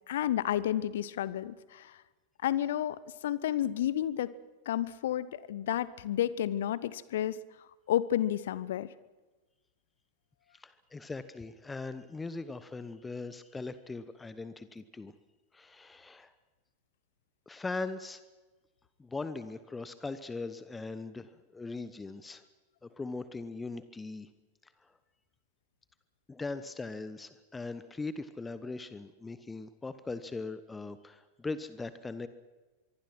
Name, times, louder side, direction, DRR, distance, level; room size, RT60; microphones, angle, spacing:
voice 1, 0.1-2.0 2.4-4.3 4.7-7.4 7.9-8.9, left 11 dB, 60° left, 19 dB, 0.8 m, -31 dB
voice 2, 10.6-15.1 15.5-16.3 17.5-18.2 19.0-22.4 22.8-24.3 26.3-32.3, left 3 dB, 10° left, 14 dB, 1.0 m, -40 dB
24.5 x 23.5 x 6.1 m, 1.2 s
figure-of-eight pair, 90°, 0 cm